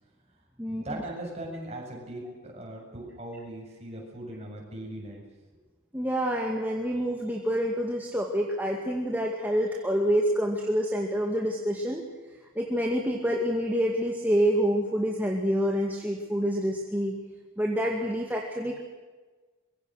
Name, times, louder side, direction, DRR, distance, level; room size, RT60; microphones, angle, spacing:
voice 1, 0.7-5.2, right 1 dB, 30° right, -1 dB, 7.8 m, -39 dB
voice 2, 5.9-12.0 12.6-17.1 17.6-18.8, equal, 10° right, 0 dB, 2.2 m, -27 dB
25.0 x 22.5 x 6.5 m, 1.3 s
head